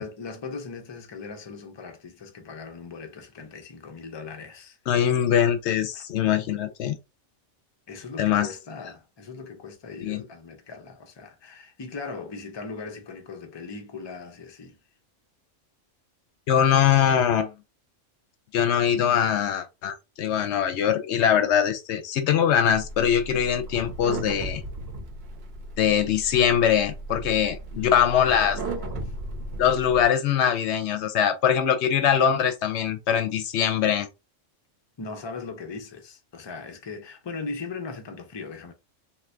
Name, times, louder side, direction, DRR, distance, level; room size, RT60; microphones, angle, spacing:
voice 1, 0.0-5.1 5.9-6.0 7.9-14.8 27.7-29.1 35.0-38.7, left 4 dB, 40° left, 0.4 m, -39 dB
voice 2, 4.9-7.0 8.2-8.5 10.0-10.2 16.5-17.5 18.5-24.6 25.8-28.6 29.6-34.1, left 9 dB, 70° left, 0.8 m, -22 dB
sound 1, 22.7-30.0, right 2 dB, 60° right, 0.9 m, -36 dB
3.3 x 2.8 x 2.5 m
omnidirectional pair, 1.3 m